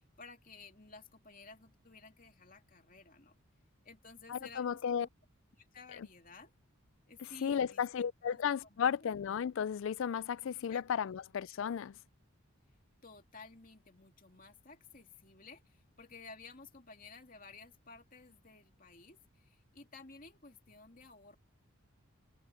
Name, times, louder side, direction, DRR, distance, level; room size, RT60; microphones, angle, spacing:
voice 1, 0.2-3.3 3.9-5.1 5.7-6.5 7.1-9.1 10.7-11.1 13.0-15.6 16.0-19.2 19.7-21.4, left 4 dB, 40° left, 2.6 m, -54 dB
voice 2, 4.3-5.1 7.4-12.0, left 7 dB, 60° left, 0.3 m, -34 dB
head